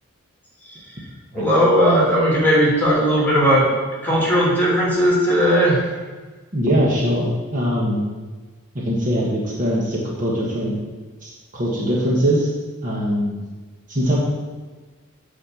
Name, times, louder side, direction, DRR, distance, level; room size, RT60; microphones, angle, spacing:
voice 1, 1.3-3.6 4.0-5.8, equal, 10° left, -6 dB, 3.0 m, -17 dB
voice 2, 6.5-8.0 8.7-10.7 11.2-12.5 12.8-13.4 13.9-14.2, equal, 40° right, -4 dB, 1.4 m, -21 dB
8.6 x 4.4 x 7.2 m, 1.3 s
head